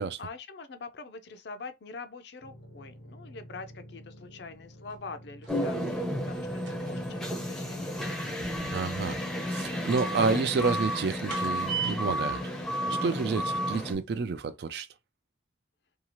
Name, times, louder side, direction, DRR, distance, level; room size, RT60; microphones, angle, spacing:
voice 1, 0.2-8.3, left 4 dB, 60° left, 0.5 m, -44 dB
sound 1, 2.4-9.7, equal, 80° left, 0.9 m, -50 dB
sound 2, 4.7-5.7 6.4-11.8 12.8-12.9 13.2-14.0 14.3-14.4, right 3 dB, 85° right, 1.0 m, -50 dB
sound 3, 5.5-13.9, equal, 5° left, 0.5 m, -32 dB
voice 2, 8.7-9.2 9.5-12.4 12.8-14.9, right 4 dB, 55° right, 0.3 m, -29 dB
2.7 x 2.3 x 2.9 m
head